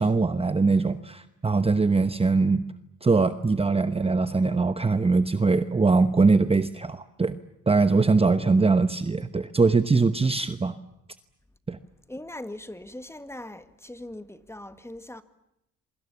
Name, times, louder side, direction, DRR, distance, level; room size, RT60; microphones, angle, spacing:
voice 1, 0.0-2.6 3.0-7.4 7.7-10.8 11.7-11.8, right 4 dB, 20° right, 1.0 m, -22 dB
voice 2, 12.1-15.2, left 1 dB, 10° left, 1.9 m, -40 dB
27.0 x 24.5 x 7.1 m
cardioid pair, 90°, 30 cm